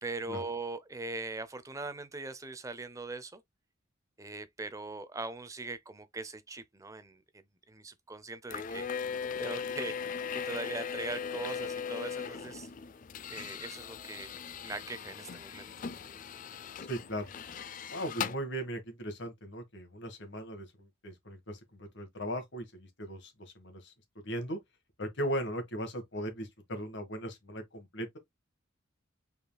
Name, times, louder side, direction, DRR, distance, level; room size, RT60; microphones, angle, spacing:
voice 1, 0.0-3.4 4.2-8.9 9.4-9.9 10.3-12.7 13.3-14.3 14.6-15.7, right 3 dB, 15° right, 0.5 m, -41 dB
sound 1, 8.5-18.4, left 6 dB, 40° left, 0.4 m, -39 dB
voice 2, 16.9-17.3 17.9-23.9 24.2-24.6 25.0-28.2, equal, 55° left, 1.5 m, -38 dB
5.4 x 4.0 x 2.2 m
head